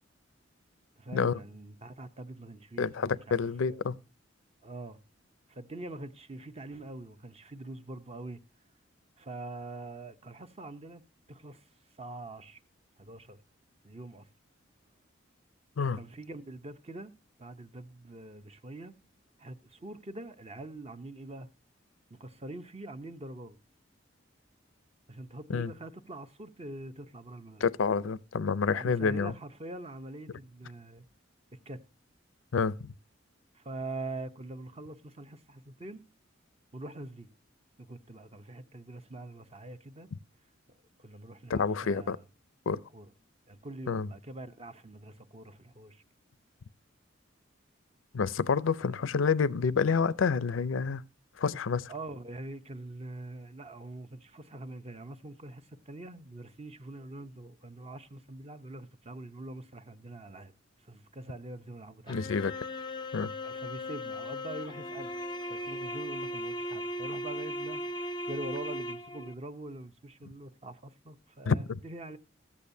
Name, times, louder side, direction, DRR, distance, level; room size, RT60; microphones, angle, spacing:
voice 1, 1.0-3.9 4.6-5.0 5.5-8.4 9.2-11.0 11.3-11.7 12.0-12.6 13.0-13.4 13.8-14.3 15.8-17.1 17.4-18.9 19.4-21.5 22.1-23.6 25.1-27.7 28.7-31.0 31.5-31.8 33.5-36.0 36.7-37.3 37.8-40.1 41.0-42.2 42.9-43.1 43.5-46.0 48.7-49.0 51.9-60.5 60.8-62.2 63.4-65.1 65.5-72.2, right 2 dB, 30° right, 0.6 m, -44 dB
voice 2, 2.8-3.9 15.8-16.0 25.5-25.7 27.6-29.3 32.5-32.8 41.5-42.2 42.7-42.8 43.9-44.1 48.1-51.0 51.4-51.9 62.1-62.5 63.1-63.3 71.5-71.6, left 5 dB, 85° left, 0.5 m, -28 dB
sound 1, 62.1-69.3, left 1 dB, 25° left, 0.5 m, -37 dB
14.0 x 8.5 x 2.6 m
head